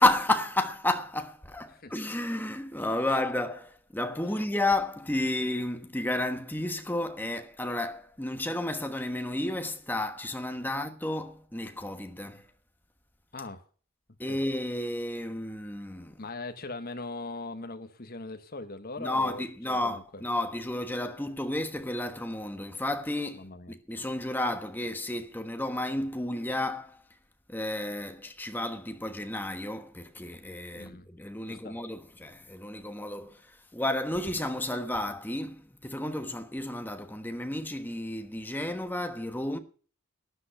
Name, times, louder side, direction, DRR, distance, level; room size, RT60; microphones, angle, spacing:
voice 1, 0.0-12.5 14.2-16.3 19.0-27.0 27.5-39.6, left 1 dB, 10° left, 1.2 m, -32 dB
voice 2, 13.3-13.6 14.3-14.4 16.2-20.2 23.3-23.7 30.7-31.1 31.4-31.8, left 3 dB, 40° left, 1.4 m, -40 dB
12.5 x 10.5 x 5.7 m
head